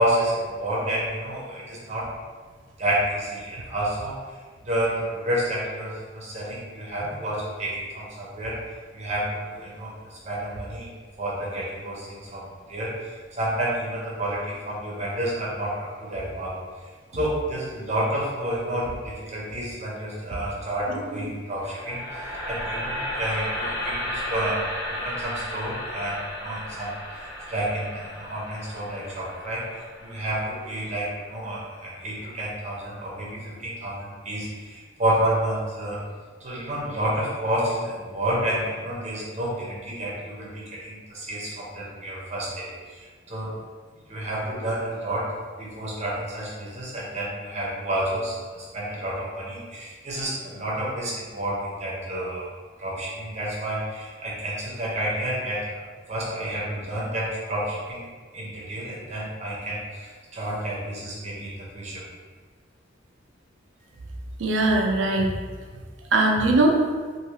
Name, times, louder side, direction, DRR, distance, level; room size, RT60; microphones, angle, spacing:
voice 1, 0.0-2.1 2.8-4.1 4.6-8.6 8.9-9.9 10.2-10.9 11.2-16.5 17.1-22.0 22.5-29.7 30.0-36.0 36.4-43.5 44.1-45.3 45.6-52.5 52.8-55.8 56.1-58.0 58.3-62.0, right 1 dB, 35° right, -5 dB, 0.8 m, -30 dB
voice 2, 20.9-21.3 64.4-65.3 66.1-66.8, right 2 dB, 90° right, 1 dB, 0.5 m, -21 dB
sound 1, 21.6-31.7, left 1 dB, 20° left, 0.6 m, -34 dB
2.7 x 2.6 x 3.2 m, 1.5 s
head